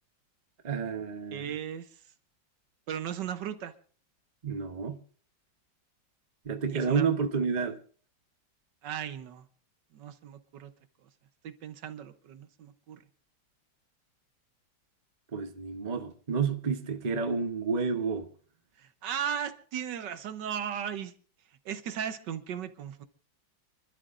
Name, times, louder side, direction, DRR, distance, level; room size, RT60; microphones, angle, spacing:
voice 1, 0.6-1.5 4.4-5.0 6.4-7.8 15.3-18.3, right 5 dB, 35° right, 0.7 m, -30 dB
voice 2, 1.3-2.0 2.9-3.7 6.7-7.1 8.8-9.5 9.9-10.7 11.0-11.1 11.4-13.0 18.8-21.1 21.6-23.0, right 8 dB, 70° right, 1.4 m, -36 dB
28.5 x 12.0 x 2.5 m
omnidirectional pair, 2.1 m